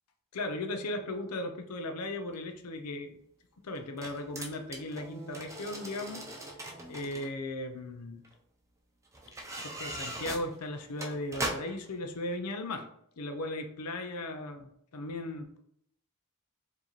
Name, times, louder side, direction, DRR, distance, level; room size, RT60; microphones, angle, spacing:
voice 1, 0.3-3.2 3.6-6.3 6.9-8.2 9.6-12.9 13.2-15.6, left 2 dB, 90° left, 5 dB, 0.6 m, -37 dB
sound 1, 2.3-2.4 3.7-7.3 8.2-8.3 9.1-11.9 12.3-12.4, right 1 dB, 15° right, 0.6 m, -40 dB
4.7 x 2.7 x 3.0 m, 0.72 s
head